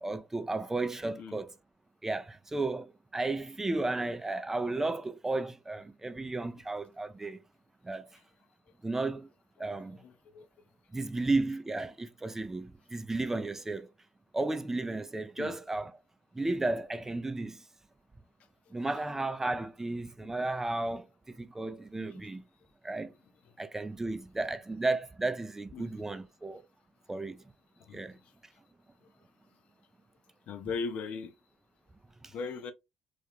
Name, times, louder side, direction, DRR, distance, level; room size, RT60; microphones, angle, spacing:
voice 1, 0.0-1.5 2.0-7.4 7.8-8.1 8.8-9.3 9.6-10.0 10.9-13.9 14.3-16.0 16.3-17.6 18.7-22.4 22.8-23.1 23.6-26.6 27.1-27.4 27.9-28.2 32.2-32.3, right 2 dB, 15° right, 0.4 m, -33 dB
voice 2, 10.0-10.4 15.4-15.5 20.4-20.5 21.9-22.2 25.7-25.9 27.8-28.0 30.5-31.3 32.3-32.7, left 5 dB, 60° left, 0.4 m, -38 dB
2.4 x 2.1 x 2.8 m
hypercardioid pair, 60°, 3 cm